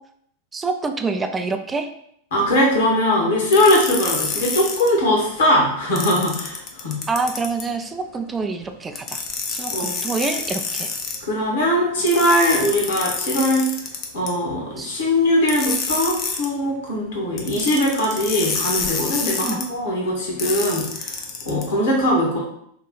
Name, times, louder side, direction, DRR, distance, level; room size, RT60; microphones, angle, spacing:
voice 1, 0.5-1.9 7.1-9.2 9.5-10.9 14.8-14.9 19.4-19.6, right 4 dB, 15° right, 6 dB, 0.3 m, -26 dB
voice 2, 2.3-7.0 9.7-9.9 11.2-13.7 14.1-21.1 21.4-22.4, left 1 dB, 60° left, -3 dB, 1.1 m, -20 dB
sound 1, 3.5-4.9 6.0-7.7 8.9-11.2 12.1-14.3 15.5-16.5 17.4-19.6 20.4-21.6, left 5 dB, 35° left, 0.5 m, -27 dB
2.9 x 2.3 x 3.8 m, 0.71 s
figure-of-eight pair, 90°, 0 cm